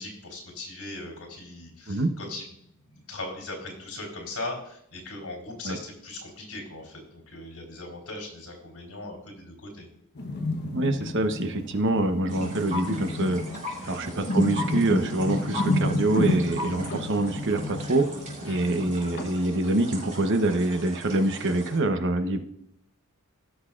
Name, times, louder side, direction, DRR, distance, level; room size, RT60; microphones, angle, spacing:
voice 1, 0.0-9.9 13.8-14.0 18.4-18.8, left 2 dB, 75° left, 1 dB, 3.5 m, -39 dB
sound 1, 10.1-19.4, left 1 dB, 50° left, 1.1 m, -30 dB
voice 2, 10.7-13.4 13.9-18.1 18.4-22.4, right 2 dB, 55° right, 7 dB, 0.9 m, -25 dB
sound 2, 12.3-21.8, left 1 dB, 35° right, 4.2 m, -40 dB
16.5 x 6.4 x 2.5 m, 0.73 s
head